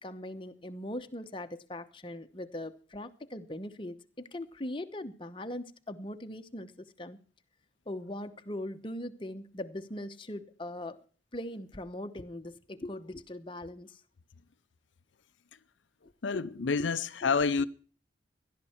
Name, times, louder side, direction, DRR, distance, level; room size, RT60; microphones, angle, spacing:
voice 1, 0.0-7.2 7.9-11.0 11.3-14.0 16.3-16.9 17.2-17.3, left 1 dB, 25° left, 1.0 m, -40 dB
voice 2, 16.2-17.6, left 5 dB, 80° left, 0.6 m, -28 dB
18.0 x 12.0 x 4.4 m
head